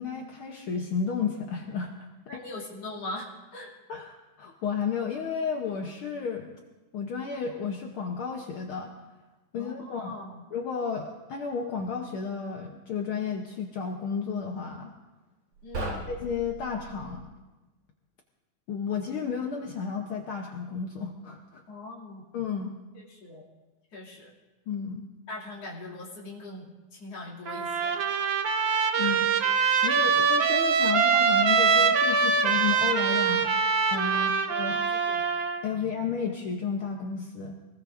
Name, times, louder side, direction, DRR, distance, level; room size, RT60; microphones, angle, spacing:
voice 1, 0.0-1.9 2.3-2.4 3.9-6.5 6.9-8.9 9.5-10.1 10.5-14.9 16.1-17.3 18.7-21.6 22.3-22.7 24.7-25.0 29.0-29.5 29.8-33.5 33.9-34.8 35.6-37.6, left 6 dB, 80° left, 2 dB, 1.1 m, -32 dB
voice 2, 2.3-3.7 9.5-10.4 15.6-16.0 21.7-22.2 22.9-23.4 23.9-24.3 25.3-28.0 28.9-29.2 34.1-35.2 35.7-36.0, left 2 dB, 50° left, -4 dB, 3.7 m, -41 dB
sound 1, 15.6-17.2, right 2 dB, 70° right, 5.9 m, -37 dB
Trumpet, 27.5-35.6, right 6 dB, 90° right, 1.0 m, -24 dB
24.5 x 19.0 x 2.6 m, 1.2 s
omnidirectional pair, 3.7 m